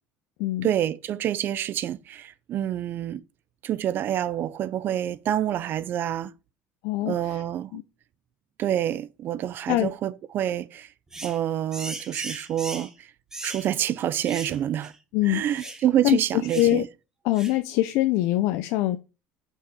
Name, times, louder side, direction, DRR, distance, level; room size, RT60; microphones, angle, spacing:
voice 1, 0.6-3.2 3.6-6.3 7.0-7.7 8.6-10.9 11.2-13.1 13.4-14.9 15.2-16.8, right 11 dB, 50° right, 0.8 m, -27 dB
voice 2, 6.8-7.4 7.7-7.8 9.7-9.9 15.1-15.6 16.0-16.8 17.2-19.0, left 16 dB, 75° left, 0.8 m, -24 dB
sound 1, 11.1-11.4 11.7-12.9 13.3-13.7 14.2-14.6 14.8-14.9 15.6-15.8 16.5-16.7 17.3-17.6, right 2 dB, 10° right, 1.6 m, -37 dB
7.6 x 5.7 x 6.9 m
cardioid pair, 130°, 5 cm